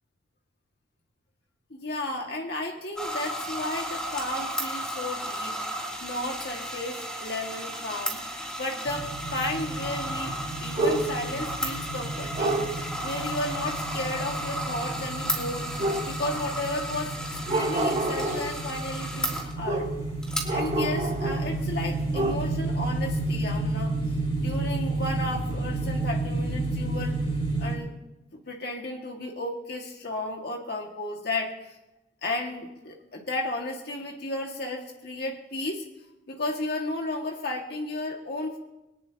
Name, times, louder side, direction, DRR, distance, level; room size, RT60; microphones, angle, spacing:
voice 1, 1.7-8.2 8.6-19.9 20.5-24.0 24.3-27.2 27.6-27.9 28.3-31.8 32.2-35.8 36.3-38.6, left 2 dB, 60° left, 0 dB, 2.0 m, -33 dB
sound 1, 3.0-19.5 20.2-20.4, equal, 5° left, 2.9 m, -34 dB
sound 2, 8.9-27.7, right 2 dB, 30° left, 4.6 m, -32 dB
sound 3, 10.8-11.3 12.3-12.8 15.7-16.5 17.4-18.6 19.6-20.1 20.4-21.6 21.9-22.4, right 2 dB, 35° right, 1.6 m, -28 dB
23.0 x 19.0 x 2.9 m, 0.96 s
head